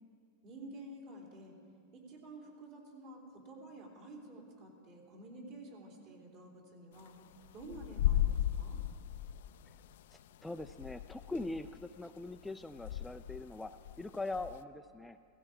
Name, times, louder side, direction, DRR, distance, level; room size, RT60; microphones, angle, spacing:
voice 1, 0.4-1.5 1.9-7.1 7.5-8.8, right 2 dB, 50° right, 0 dB, 3.3 m, -50 dB
sound 1, 7.1-7.2 7.5-10.0 10.4-11.8 12.2-12.5 12.7-14.6, left 12 dB, 75° left, 0.4 m, -35 dB
voice 2, 10.1-13.7 14.0-15.2, left 2 dB, 5° left, 7 dB, 0.3 m, -42 dB
17.0 x 15.5 x 5.0 m, 2.5 s
supercardioid pair, 145°, 0 cm